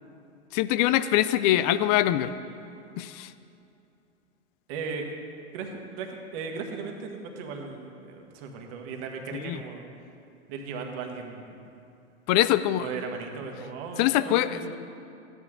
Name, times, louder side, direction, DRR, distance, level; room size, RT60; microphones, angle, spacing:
voice 1, 0.5-2.3 3.0-3.3 9.3-9.6 12.3-12.9 14.0-14.6, left 14 dB, 35° left, 14 dB, 0.4 m, -23 dB
voice 2, 4.7-5.1 5.5-9.8 10.5-11.6 12.8-14.8, right 5 dB, 50° right, 3 dB, 1.6 m, -37 dB
13.0 x 10.0 x 3.7 m, 2.7 s
hypercardioid pair, 105°, 37 cm